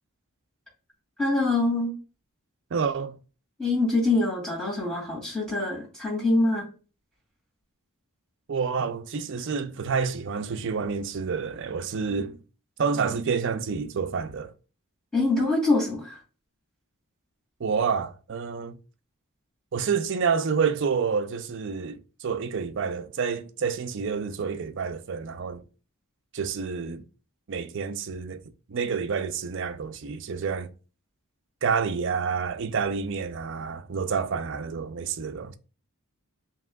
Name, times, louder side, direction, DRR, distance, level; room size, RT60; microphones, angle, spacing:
voice 1, 1.2-1.9 3.6-6.6 15.1-16.2, left 2 dB, 5° left, 2.4 m, -24 dB
voice 2, 2.7-3.2 8.5-12.4 12.8-14.5 17.6-18.8 19.7-25.6 26.3-27.0 27.5-28.4 28.7-30.7 31.6-35.5, right 5 dB, 55° right, 0.5 m, -28 dB
7.5 x 2.9 x 2.3 m
head